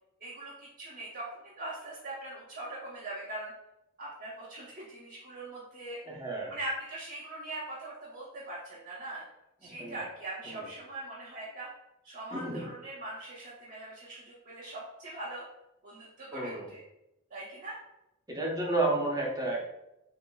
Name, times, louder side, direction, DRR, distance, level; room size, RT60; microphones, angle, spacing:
voice 1, 0.2-3.5 4.0-6.0 6.5-9.2 9.6-11.7 12.0-15.4 15.8-16.8 17.3-17.8, right 1 dB, 45° right, -8 dB, 1.0 m, -41 dB
voice 2, 6.0-6.5 9.6-10.0 10.4-10.7 12.3-12.6 16.3-16.7 18.3-19.6, right 2 dB, 20° right, -2 dB, 1.0 m, -32 dB
6.9 x 2.9 x 2.3 m, 0.88 s
head